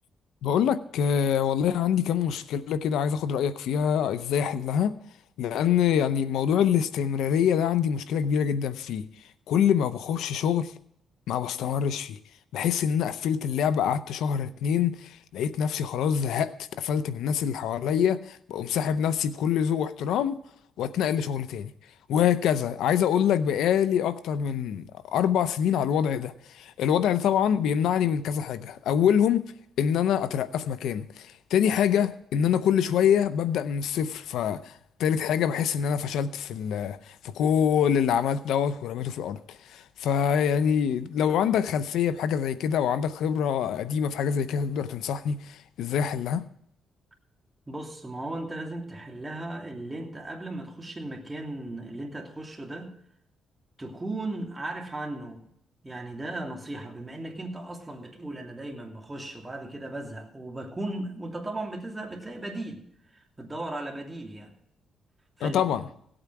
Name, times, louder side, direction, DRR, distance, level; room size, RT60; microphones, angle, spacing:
voice 1, 0.4-4.9 5.4-9.1 9.5-10.7 11.3-12.2 12.5-20.4 20.8-21.7 22.1-29.4 29.8-46.4 65.4-65.8, left 8 dB, 90° left, 0.7 m, -25 dB
voice 2, 47.7-52.9 53.8-55.5 55.8-62.8 63.1-64.5 65.4-65.6, right 2 dB, 15° right, 2.8 m, -36 dB
17.5 x 8.8 x 4.7 m
cardioid pair, 105°, 0 cm